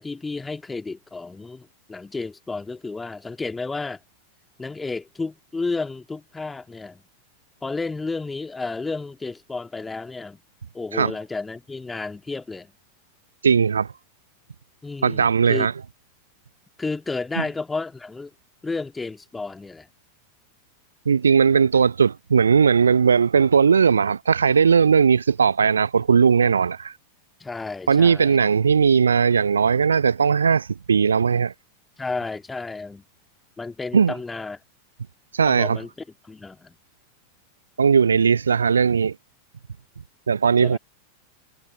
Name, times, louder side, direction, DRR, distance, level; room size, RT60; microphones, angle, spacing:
voice 1, 0.0-4.0 4.6-7.0 7.6-10.4 10.7-12.7 14.8-15.7 16.8-18.3 18.6-19.9 27.4-28.4 32.0-33.0 33.6-34.6 35.5-35.9 36.2-36.8 40.6-40.8, left 3 dB, 10° left, 2.1 m, -32 dB
voice 2, 13.4-13.9 15.0-15.7 17.4-17.5 21.1-26.9 27.9-31.5 33.9-34.1 35.3-35.8 37.8-39.1 40.3-40.8, right 6 dB, 70° right, 0.4 m, -18 dB
figure-of-eight pair, 90°, 0 cm